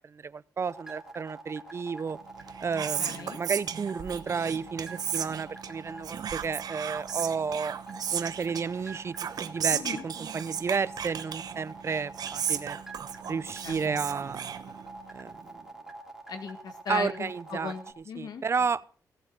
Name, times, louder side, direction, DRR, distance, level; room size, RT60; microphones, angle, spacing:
voice 1, 0.0-2.2 2.6-7.8 8.1-12.8 13.3-14.5 15.1-15.7 16.9-17.7 18.2-18.8, right 5 dB, 40° right, 18 dB, 0.6 m, -32 dB
sound 1, 0.7-17.9, right 2 dB, 5° right, 2.6 m, -45 dB
Whispering, 2.3-15.2, right 8 dB, 75° right, 1.0 m, -35 dB
voice 2, 2.8-3.4 9.7-10.0 13.2-14.0 16.3-18.4, left 5 dB, 80° left, 7 dB, 1.9 m, -38 dB
17.0 x 8.0 x 6.3 m, 0.42 s
wide cardioid pair, 115°, 7 cm